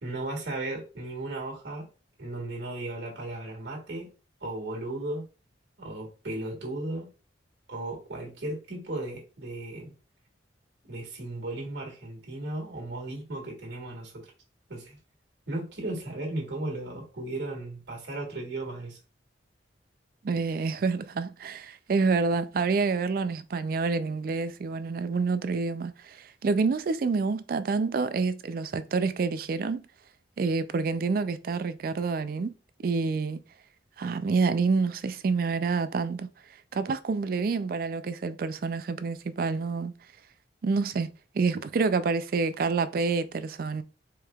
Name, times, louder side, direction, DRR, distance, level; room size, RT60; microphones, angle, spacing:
voice 1, 0.0-1.9 2.2-4.1 4.4-5.2 5.8-7.1 7.7-9.9 10.9-14.3 14.7-15.0 15.5-19.0, right 2 dB, 75° right, 1.7 m, -35 dB
voice 2, 20.2-29.8 30.4-32.6 32.8-33.4 34.0-36.3 36.7-40.0 40.6-41.1 41.3-43.8, right 4 dB, 50° right, 0.3 m, -28 dB
4.7 x 3.4 x 2.3 m
head